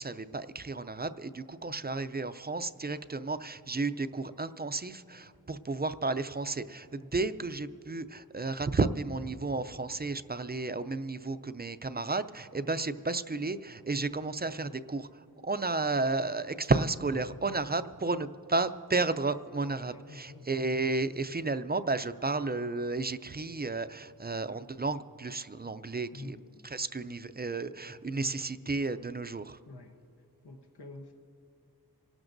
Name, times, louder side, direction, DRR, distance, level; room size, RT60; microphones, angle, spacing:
voice 1, 0.0-26.4 26.6-29.6, right 3 dB, 25° right, 12 dB, 0.4 m, -32 dB
voice 2, 19.8-20.5 26.1-26.7 29.7-29.9 30.4-31.1, left 2 dB, 85° left, 3 dB, 0.9 m, -47 dB
28.0 x 12.0 x 2.6 m, 2.8 s
wide cardioid pair, 50°, 38 cm